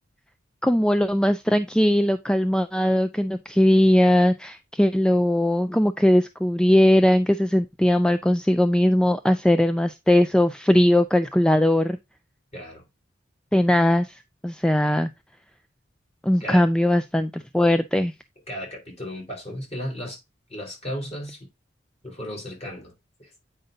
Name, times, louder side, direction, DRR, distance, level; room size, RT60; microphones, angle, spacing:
voice 1, 0.6-12.0 13.5-15.1 16.2-18.1, left 1 dB, 5° left, 0.3 m, -20 dB
voice 2, 18.5-20.2 20.5-21.5 22.0-22.9 23.2-23.3, equal, 35° left, 3.8 m, -35 dB
8.9 x 5.2 x 2.7 m
head